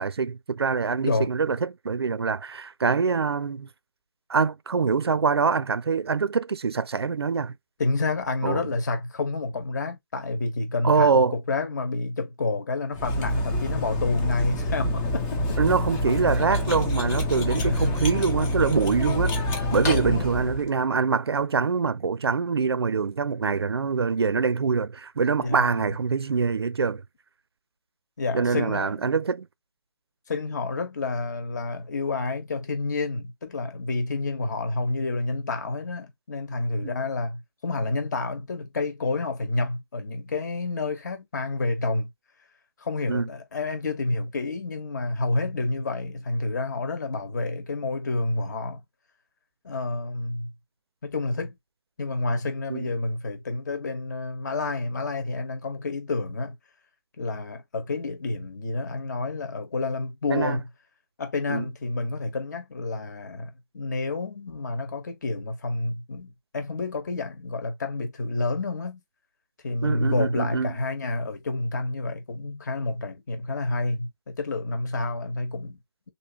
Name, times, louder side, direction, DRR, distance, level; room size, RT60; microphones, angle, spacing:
voice 1, 0.0-3.7 4.3-7.5 8.4-8.6 10.8-11.4 15.6-27.0 28.3-29.5 36.8-36.9 43.1-43.3 52.7-52.9 60.3-60.6 61.5-61.6 69.8-70.7, right 5 dB, 80° right, 0.4 m, -24 dB
voice 2, 7.8-15.8 17.6-17.9 19.7-20.3 25.4-25.7 28.2-29.1 30.3-42.1 42.8-48.8 49.6-50.5 51.0-51.6 52.0-56.5 57.2-60.6 61.2-69.0 69.6-75.8, left 3 dB, 45° left, 1.2 m, -29 dB
Cutlery silverware, 12.9-20.7, left 1 dB, 10° left, 0.3 m, -26 dB
3.1 x 2.7 x 2.8 m
figure-of-eight pair, 155°, 13 cm